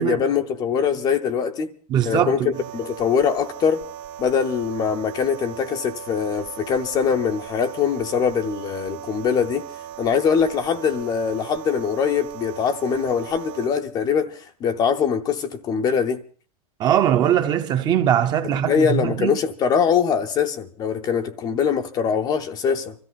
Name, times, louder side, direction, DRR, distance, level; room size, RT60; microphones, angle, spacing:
voice 1, 0.0-1.7 2.0-3.8 4.2-9.7 10.0-16.2 18.7-22.9, left 6 dB, 20° left, 0.7 m, -22 dB
voice 2, 1.9-2.6 16.8-19.4, right 10 dB, 20° right, 0.7 m, -21 dB
sound 1, 2.5-13.7, right 10 dB, 50° right, 1.1 m, -38 dB
24.5 x 14.0 x 4.0 m
supercardioid pair, 165°, 19 cm